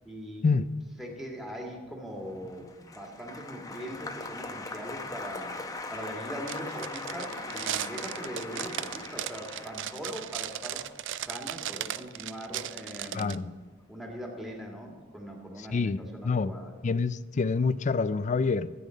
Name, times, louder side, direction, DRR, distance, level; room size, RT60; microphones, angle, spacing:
voice 1, 0.0-0.4 1.0-5.6 5.9-10.8 11.2-13.5 13.9-16.7, equal, ahead, 2.1 m, -41 dB
Applause, 2.3-12.7 12.9-13.6, left 2 dB, 20° left, 0.9 m, -41 dB
sound 1, 6.5-13.4, right 11 dB, 65° right, 0.4 m, -36 dB
voice 2, 13.1-13.5 15.6-16.0 16.2-16.5 16.8-18.7, left 4 dB, 35° left, 0.4 m, -27 dB
14.0 x 8.4 x 5.1 m
head